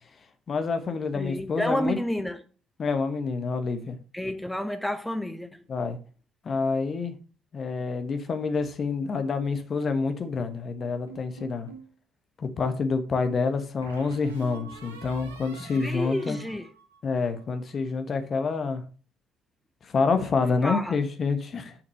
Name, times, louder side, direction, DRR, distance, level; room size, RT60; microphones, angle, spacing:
voice 1, 0.5-2.0 2.8-4.0 5.7-6.0 6.4-7.1 7.5-11.7 12.4-16.4 17.0-18.8 19.8-21.8, left 4 dB, 40° left, 1.1 m, -27 dB
voice 2, 1.1-2.4 4.1-5.6 15.6-16.7 20.6-21.0, left 1 dB, 5° left, 0.8 m, -30 dB
sound 1, 11.1-11.9 13.8-17.4, right 3 dB, 80° right, 1.5 m, -45 dB
6.8 x 5.9 x 6.5 m
figure-of-eight pair, 50°, 0 cm